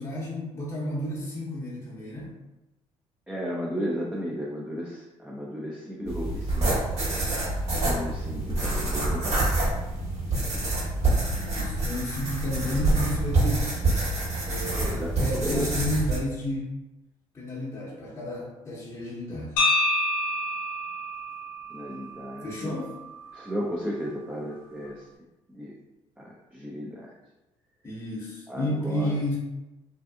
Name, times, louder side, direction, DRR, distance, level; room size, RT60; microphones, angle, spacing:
voice 1, 0.0-2.3 11.4-13.7 14.4-16.7 17.3-19.5 22.4-22.9 27.8-29.4, left 1 dB, 20° left, -7 dB, 0.8 m, -31 dB
voice 2, 3.3-6.7 7.9-9.4 14.8-15.1 15.4-15.7 21.7-22.7 23.3-25.0 25.5-25.7 26.2-27.1 28.5-29.2, equal, 10° right, -4 dB, 0.5 m, -34 dB
sound 1, 6.1-16.2, right 2 dB, 50° right, 1.3 m, -26 dB
sound 2, 19.6-23.6, left 2 dB, 75° left, 0.5 m, -29 dB
2.6 x 2.4 x 2.3 m, 1.0 s
hypercardioid pair, 60°, 15 cm